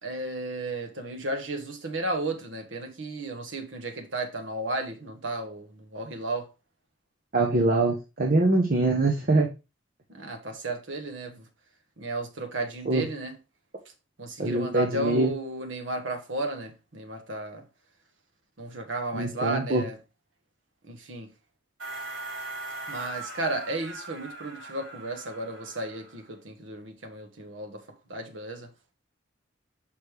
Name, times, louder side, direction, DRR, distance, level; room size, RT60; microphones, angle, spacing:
voice 1, 0.0-6.5 10.1-11.5 12.0-13.4 14.2-17.6 18.6-20.0 20.9-21.3 22.9-27.8 28.1-28.7, right 2 dB, 70° right, 1.3 m, -34 dB
voice 2, 7.3-9.5 12.8-13.0 14.4-15.3 19.1-19.8, right 2 dB, 45° right, 1.0 m, -23 dB
sound 1, 21.8-26.3, right 2 dB, 85° right, 3.8 m, -40 dB
6.4 x 5.2 x 3.4 m
head